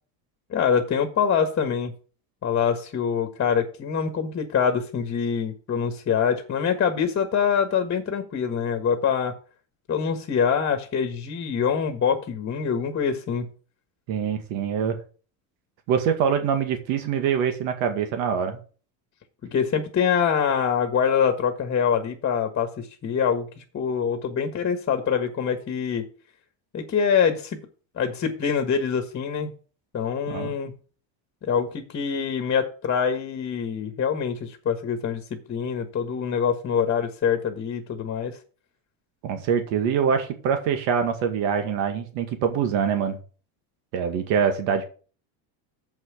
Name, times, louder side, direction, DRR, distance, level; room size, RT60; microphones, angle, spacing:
voice 1, 0.5-1.9 2.4-9.3 9.9-13.5 19.5-26.1 26.7-27.6 28.0-29.5 29.9-30.7 31.4-38.4, left 7 dB, 30° left, 6 dB, 1.4 m, -25 dB
voice 2, 14.1-15.0 15.9-18.6 30.3-30.5 39.2-43.2 43.9-44.8, right 7 dB, 75° right, 6 dB, 2.1 m, -24 dB
7.6 x 5.8 x 7.3 m, 0.39 s
cardioid pair, 135°, 45 cm